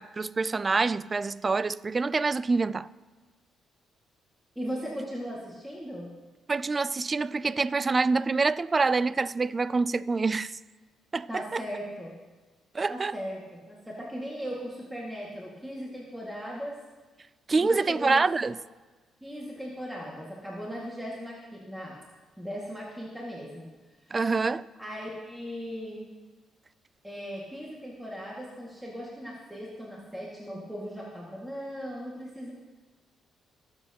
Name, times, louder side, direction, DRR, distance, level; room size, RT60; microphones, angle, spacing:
voice 1, 0.0-2.9 6.5-10.6 11.1-11.6 12.7-13.2 17.5-18.6 24.1-24.6, right 4 dB, 30° right, 0.3 m, -26 dB
voice 2, 4.6-6.1 11.3-12.2 12.9-16.8 17.6-18.3 19.2-22.0 22.4-23.7 24.8-26.1 27.0-32.5, equal, 5° right, 2.0 m, -38 dB
22.0 x 7.7 x 2.9 m
cardioid pair, 90°, 0 cm